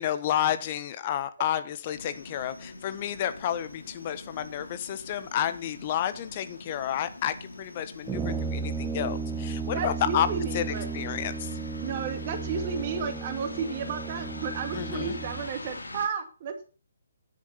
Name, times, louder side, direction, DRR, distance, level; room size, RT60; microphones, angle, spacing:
voice 1, 0.0-10.3 10.5-10.6 10.9-11.6 14.7-15.2, left 10 dB, 35° left, 12 dB, 1.3 m, -30 dB
sound 1, 1.9-16.1, left 2 dB, 75° left, 2.9 m, -44 dB
Brass instrument, 8.1-15.5, right 4 dB, 10° right, 1.0 m, -34 dB
voice 2, 9.7-10.9 11.8-16.7, right 6 dB, 35° right, 6 dB, 2.2 m, -33 dB
10.5 x 8.4 x 5.7 m, 0.36 s
figure-of-eight pair, 140°, 0 cm